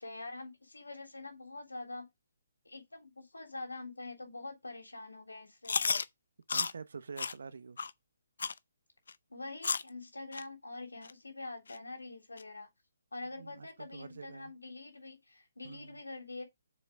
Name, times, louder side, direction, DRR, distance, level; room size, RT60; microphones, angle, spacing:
voice 1, 0.0-2.1 2.6-5.8 9.3-12.7 13.1-16.4, left 2 dB, 90° left, 3.4 m, -45 dB
Chewing mastication, 5.6-6.0 6.5-6.7 7.2-7.3 7.8-7.9 8.4-8.6 9.1-9.2 9.6-9.9 10.3-10.4 11.0-11.1 11.7-11.8 12.4-12.5, left 5 dB, 70° left, 0.5 m, -32 dB
voice 2, 6.5-7.8 13.4-14.5 15.6-16.0, right 5 dB, 65° right, 1.1 m, -47 dB
7.1 x 5.3 x 5.0 m
figure-of-eight pair, 140°, 0 cm